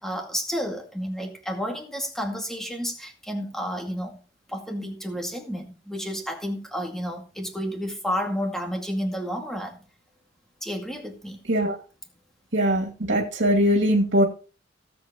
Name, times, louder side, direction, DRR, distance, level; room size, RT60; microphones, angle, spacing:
voice 1, 0.0-4.2 4.5-9.8 10.6-11.4, equal, ahead, 2.2 m, -31 dB
voice 2, 12.5-14.2, equal, 65° right, 2.5 m, -21 dB
18.0 x 8.0 x 3.0 m
head